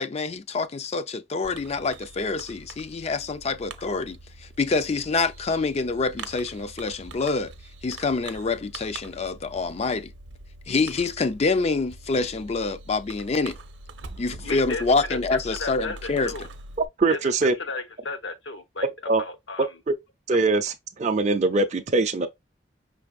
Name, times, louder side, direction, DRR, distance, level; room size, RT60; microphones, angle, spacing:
voice 1, 0.0-4.2 4.6-7.5 7.8-10.1 10.7-13.6 14.2-16.5, left 3 dB, 35° left, 0.4 m, -26 dB
Fireworks, 1.4-16.9, right 2 dB, 70° right, 0.7 m, -43 dB
voice 2, 14.4-14.8 15.1-16.5 17.1-17.2 17.6-18.9 19.2-19.7, left 3 dB, 80° left, 1.0 m, -33 dB
voice 3, 17.0-17.5 19.1-19.2 19.9-20.0 20.3-22.3, right 3 dB, 40° right, 0.5 m, -22 dB
5.8 x 3.4 x 2.3 m
head